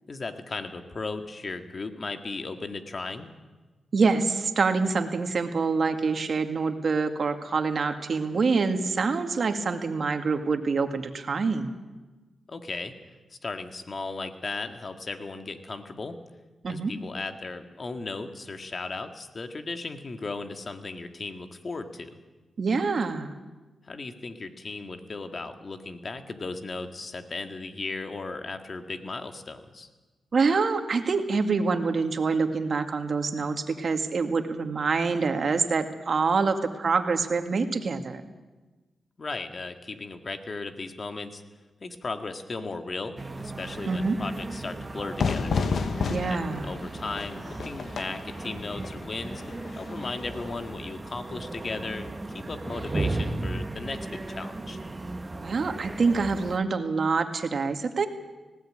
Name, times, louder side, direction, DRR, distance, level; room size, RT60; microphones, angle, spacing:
voice 1, 0.1-3.3 12.5-12.9 13.3-16.2 16.7-22.1 23.8-29.9 39.2-41.4 41.8-45.6 46.3-54.8, left 3 dB, 45° left, 7 dB, 1.9 m, -36 dB
voice 2, 3.9-11.8 16.6-16.9 22.6-23.3 30.3-38.2 43.9-44.2 46.1-46.8 55.4-58.1, right 4 dB, 60° right, 6 dB, 2.0 m, -26 dB
sound 1, 43.2-56.6, right 2 dB, 25° right, 1.3 m, -36 dB
Fire / Fireworks, 45.2-50.7, left 5 dB, 70° left, 1.1 m, -32 dB
19.0 x 16.5 x 8.8 m, 1.2 s
cardioid pair, 65°, 0 cm